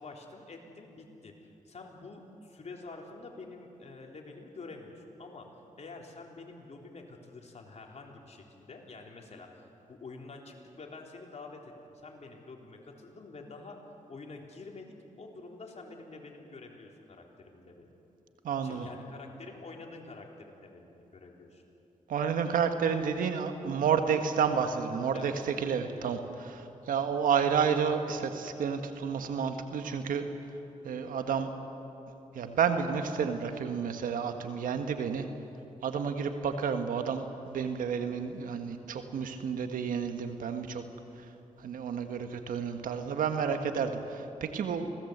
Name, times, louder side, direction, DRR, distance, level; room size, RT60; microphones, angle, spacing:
voice 1, 0.0-9.6 9.9-13.8 14.1-17.9 18.6-21.6 25.1-25.3, left 3 dB, 55° left, 1 dB, 3.7 m, -47 dB
voice 2, 18.4-18.9 22.1-30.2 30.8-31.5 32.3-35.2 35.8-40.8 41.6-45.0, right 6 dB, 90° right, 7 dB, 1.5 m, -30 dB
25.5 x 18.0 x 8.1 m, 2.9 s
cardioid pair, 60°, 14 cm